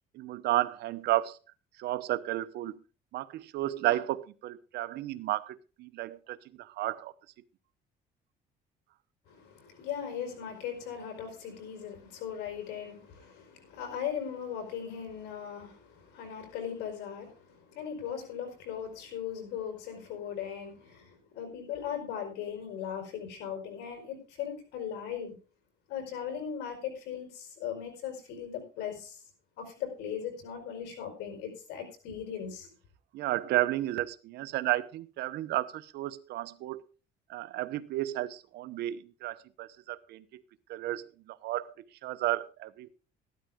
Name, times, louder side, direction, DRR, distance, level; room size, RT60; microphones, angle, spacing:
voice 1, 0.1-1.4 1.8-2.8 3.1-7.1 33.1-36.8 37.3-40.4 40.7-41.7 42.0-42.9, right 15 dB, 75° right, 0.9 m, -32 dB
voice 2, 9.2-25.3 25.9-29.2 29.6-32.7, left 8 dB, 85° left, 5.0 m, -38 dB
13.5 x 12.0 x 3.7 m
cardioid pair, 110°, 17 cm